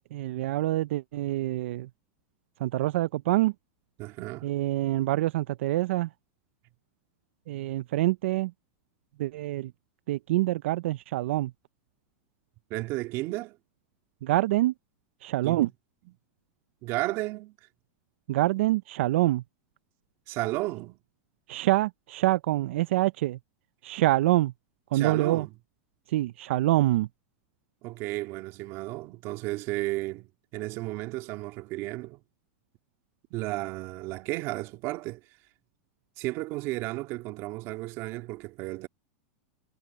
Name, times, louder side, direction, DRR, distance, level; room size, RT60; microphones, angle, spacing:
voice 1, 0.1-1.9 2.6-3.5 4.4-6.1 7.5-8.5 9.2-9.7 10.1-11.5 14.2-14.7 15.2-15.7 18.3-19.4 21.5-23.4 23.8-24.5 24.9-25.5 26.1-27.1, right 16 dB, 70° right, 0.4 m, -26 dB
voice 2, 4.0-4.5 12.7-13.6 15.4-15.7 16.1-16.2 16.8-17.6 20.3-21.0 24.9-25.5 27.8-32.2 33.3-35.2 36.2-38.9, right 19 dB, 40° right, 2.3 m, -33 dB
supercardioid pair, 155°, 7 cm